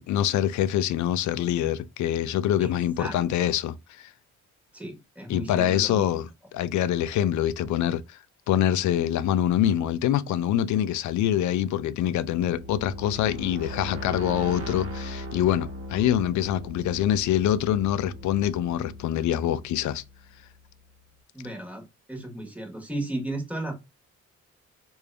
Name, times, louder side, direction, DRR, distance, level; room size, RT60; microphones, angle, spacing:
voice 1, 0.0-3.7 5.3-8.2 8.5-20.0, left 11 dB, 75° left, 0.4 m, -25 dB
voice 2, 3.0-3.4 4.7-6.1 21.3-21.8 22.1-23.7, right 1 dB, 5° right, 1.4 m, -34 dB
sound 1, 11.8-20.6, left 1 dB, 50° right, 1.1 m, -39 dB
3.3 x 2.6 x 3.3 m
cardioid pair, 90°, 30 cm